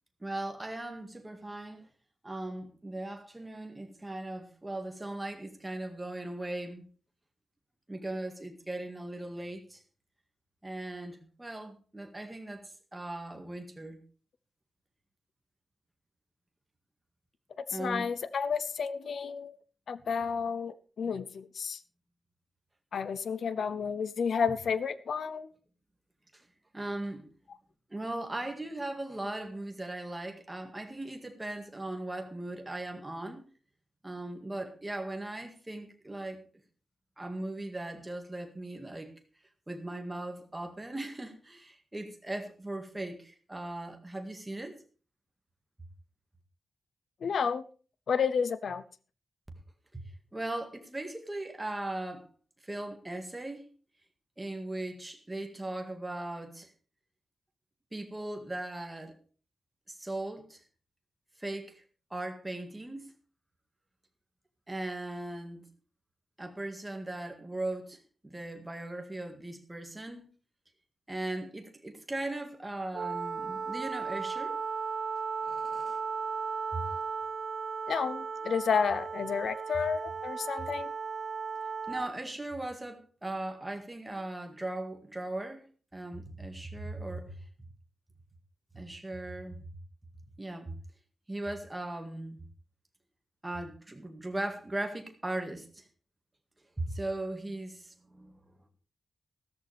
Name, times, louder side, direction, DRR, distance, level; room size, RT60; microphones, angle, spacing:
voice 1, 0.2-1.9 2.2-6.8 7.9-9.8 10.6-12.6 12.9-14.0 17.7-18.1 26.3-26.4 26.7-27.3 27.9-33.4 34.0-36.4 37.2-39.1 39.7-44.8 49.9-50.0 50.3-52.3 52.6-53.7 54.4-56.7 57.9-59.1 60.0-60.6 61.4-61.8 62.1-63.1 64.7-65.6 66.4-70.3 71.1-74.6 75.4-76.0 76.7-76.8 81.9-85.6 85.9-87.4 88.7-89.6 90.4-90.7 91.3-92.4 93.4-95.8 96.8-98.3, right 2 dB, 15° right, 2.0 m, -38 dB
voice 2, 17.6-19.6 19.9-21.8 22.9-25.5 47.2-47.6 48.1-48.8 77.9-80.9, left 6 dB, 75° left, 0.7 m, -31 dB
Wind instrument woodwind instrument, 72.9-82.1, right 5 dB, 50° right, 1.2 m, -36 dB
14.5 x 13.5 x 3.5 m
wide cardioid pair, 165°, 0 cm